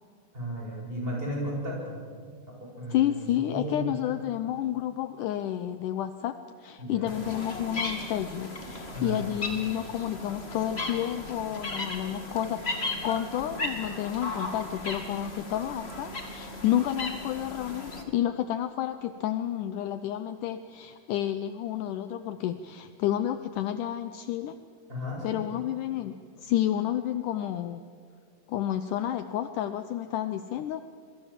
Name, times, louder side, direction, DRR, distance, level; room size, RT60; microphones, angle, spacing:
voice 1, 0.3-2.0 2.8-3.2 3.5-4.1 6.8-7.1 8.9-9.3 24.9-25.4, equal, 15° right, -2 dB, 7.7 m, -34 dB
voice 2, 2.9-24.6 25.2-27.8 28.5-30.8, left 11 dB, 80° left, 10 dB, 1.8 m, -30 dB
sound 1, 7.1-18.0, left 2 dB, 20° left, 1.8 m, -36 dB
27.0 x 23.5 x 7.4 m, 2.1 s
omnidirectional pair, 4.6 m